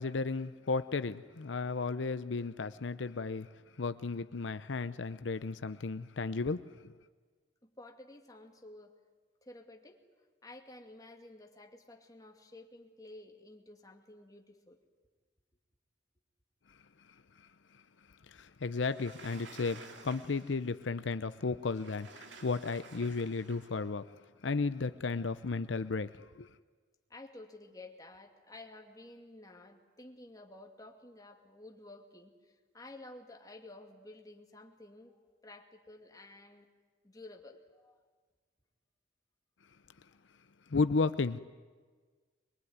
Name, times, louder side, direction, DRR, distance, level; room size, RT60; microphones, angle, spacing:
voice 1, 0.0-3.5 3.8-6.9 18.3-24.0 24.4-26.5 40.7-41.4, left 4 dB, 85° left, 0.7 m, -34 dB
voice 2, 7.6-8.9 9.4-10.0 10.4-14.8 27.1-36.7 37.0-38.0, left 2 dB, 20° left, 2.4 m, -52 dB
Sliding door, 18.8-20.7 21.6-23.8, right 4 dB, 80° right, 2.2 m, -53 dB
23.0 x 22.5 x 9.6 m
head